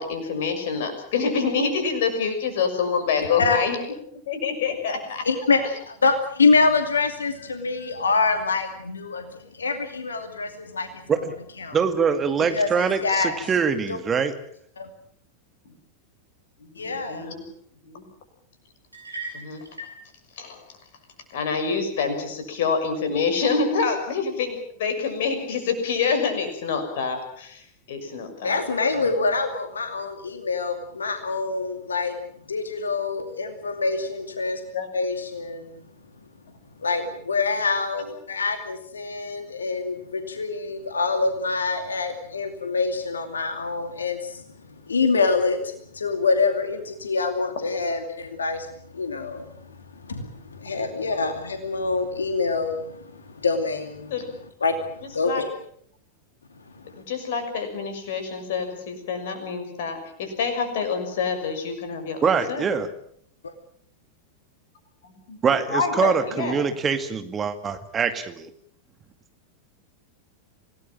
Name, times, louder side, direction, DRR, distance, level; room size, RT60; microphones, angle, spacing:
voice 1, 0.0-3.8 4.3-5.2 16.6-17.4 17.8-18.0 19.3-19.6 20.4-20.6 21.3-28.6 29.0-29.3 34.7-34.9 38.0-38.1 50.2-50.4 54.1-54.3 55.2-55.4 56.8-62.7 65.1-65.4 65.7-66.6, left 5 dB, 55° left, 7 dB, 6.2 m, -27 dB
voice 2, 3.2-3.6 5.3-11.0 11.6-11.8 12.4-13.4 13.9-14.2 14.8-14.9 16.8-17.3 28.4-32.2 32.5-34.6 34.9-35.8 36.8-44.4 44.9-48.7 48.9-49.7 49.9-54.1 54.6-55.5 56.8-57.0, left 4 dB, 75° left, 7 dB, 2.6 m, -25 dB
voice 3, 11.7-14.3 62.2-62.9 65.4-68.5, right 6 dB, 20° right, 9 dB, 2.2 m, -24 dB
sound 1, 18.9-20.0, right 2 dB, 85° right, 7.4 m, -37 dB
27.0 x 18.5 x 7.5 m, 0.64 s
figure-of-eight pair, 90°, 0 cm